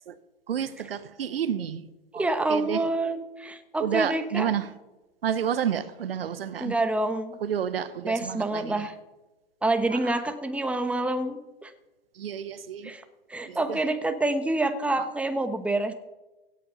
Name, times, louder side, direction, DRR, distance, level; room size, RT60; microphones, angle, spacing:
voice 1, 0.5-1.8 2.1-2.8 3.8-4.6 5.2-6.7 7.4-8.8 12.2-12.9 13.5-13.8 15.0-15.1, right 8 dB, 80° right, 0.9 m, -30 dB
voice 2, 2.1-4.5 6.6-7.4 8.0-8.9 9.6-11.7 12.8-13.0 13.3-15.9, right 2 dB, 5° right, 1.1 m, -27 dB
16.5 x 7.7 x 5.6 m
hypercardioid pair, 100°, 29 cm